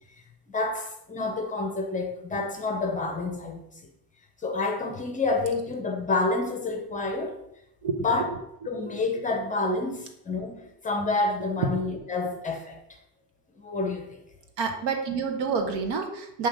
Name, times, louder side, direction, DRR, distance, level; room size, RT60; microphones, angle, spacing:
voice 1, 0.5-3.6 4.4-7.4 8.0-8.3 8.7-12.8 13.6-14.0, left 3 dB, 20° left, 3 dB, 0.6 m, -28 dB
voice 2, 14.6-16.5, right 5 dB, 80° right, 5 dB, 1.1 m, -28 dB
7.6 x 2.9 x 5.1 m, 0.80 s
cardioid pair, 175°, 42 cm